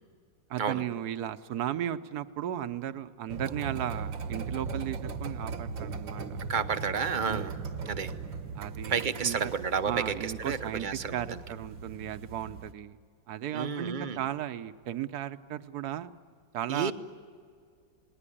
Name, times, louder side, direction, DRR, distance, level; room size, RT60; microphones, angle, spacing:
voice 1, 0.5-6.4 7.3-7.5 8.6-9.4 9.8-13.0 13.3-16.1 16.5-16.9, right 11 dB, 60° right, 12 dB, 1.2 m, -35 dB
sound 1, 3.3-12.7, right 5 dB, 80° right, 2.0 m, -38 dB
voice 2, 6.5-7.5 7.9-8.1 8.9-11.4 13.5-14.2 16.7-16.9, right 6 dB, 40° right, 10 dB, 0.7 m, -31 dB
29.0 x 20.0 x 10.0 m, 2.2 s
omnidirectional pair, 2.1 m